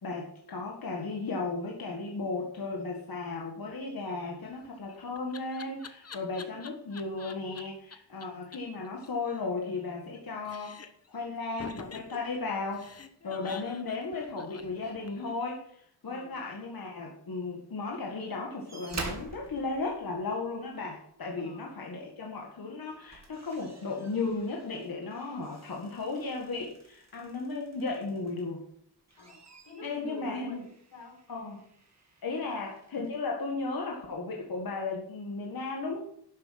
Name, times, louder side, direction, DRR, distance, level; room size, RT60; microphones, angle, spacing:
voice 1, 0.0-10.8 11.1-12.9 13.2-28.6 29.8-30.6 31.3-31.6 32.2-36.0, left 3 dB, 60° left, -1 dB, 1.9 m, -35 dB
Laughter, 4.5-7.6 7.9-8.3 8.5-8.6 8.9-10.2 10.4-11.1 11.6-15.3, left 5 dB, 35° left, 1.0 m, -46 dB
voice 2, 13.3-13.7 16.0-16.4 21.3-21.7 29.2-31.2 32.4-32.6, left 1 dB, 85° left, 1 dB, 4.1 m, -48 dB
sound 1, 18.7-20.7 22.2-22.4 22.8-28.6 29.0-33.2 34.1-34.2, right 3 dB, 40° right, 2.4 m, -47 dB
12.0 x 7.5 x 5.9 m, 0.67 s
wide cardioid pair, 110°, 41 cm